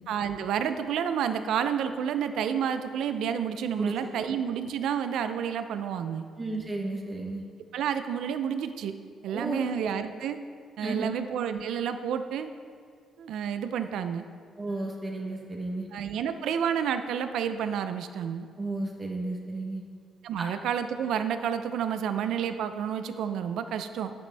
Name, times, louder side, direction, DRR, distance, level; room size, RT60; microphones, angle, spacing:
voice 1, 0.1-6.3 7.7-9.0 9.2-10.4 10.8-12.5 13.2-14.3 15.9-18.5 20.2-24.1, right 8 dB, 80° right, 9 dB, 0.5 m, -30 dB
voice 2, 3.8-4.3 6.4-7.4 9.3-9.9 10.8-11.1 14.6-15.9 18.6-19.8, right 2 dB, 25° right, 0 dB, 1.1 m, -33 dB
11.0 x 9.2 x 3.4 m, 2.1 s
cardioid pair, 160°, 0 cm